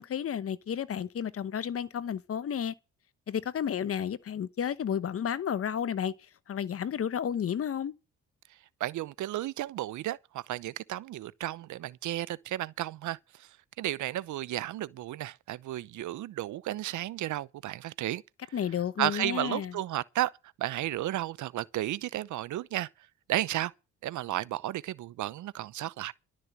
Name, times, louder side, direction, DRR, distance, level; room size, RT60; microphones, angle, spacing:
voice 1, 0.0-2.7 3.3-6.1 6.5-7.9 18.5-19.8, left 8 dB, 50° left, 1.0 m, -32 dB
voice 2, 8.8-13.5 13.8-18.2 19.0-20.3 20.6-22.9 23.3-23.7 24.0-26.1, right 14 dB, 75° right, 0.8 m, -33 dB
12.0 x 6.4 x 9.5 m
cardioid pair, 90°, 30 cm